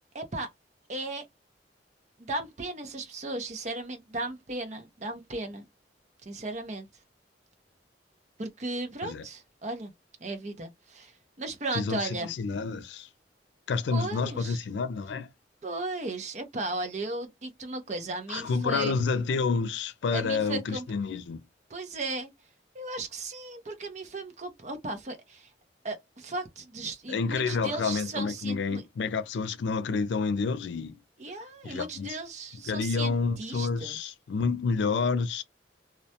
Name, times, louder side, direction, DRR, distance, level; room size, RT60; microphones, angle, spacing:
voice 1, 0.1-0.5 0.9-1.3 2.2-5.7 6.2-6.9 8.4-9.9 10.2-11.1 11.4-12.3 13.9-14.6 15.6-19.0 20.1-20.9 21.7-22.3 22.7-25.5 25.8-28.8 31.2-34.1, right 2 dB, 40° right, 0.6 m, -36 dB
voice 2, 11.7-13.1 13.7-15.3 18.3-21.4 27.1-31.0 31.6-32.2 32.7-35.4, left 4 dB, 85° left, 0.4 m, -29 dB
2.3 x 2.1 x 2.7 m
head